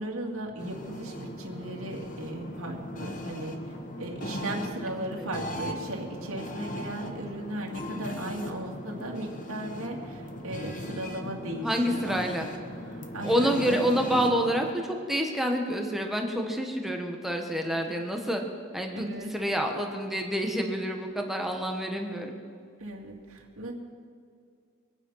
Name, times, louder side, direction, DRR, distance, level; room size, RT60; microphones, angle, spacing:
voice 1, 0.0-3.6 4.0-12.2 12.9-13.6 18.9-19.3 22.8-23.7, right 1 dB, 70° right, -1 dB, 2.4 m, -37 dB
sound 1, 0.6-14.7, left 1 dB, 40° left, 1.3 m, -38 dB
voice 2, 11.6-12.5 13.2-18.4 18.7-22.3, equal, ahead, 2 dB, 1.4 m, -28 dB
23.0 x 9.2 x 5.7 m, 2.3 s
head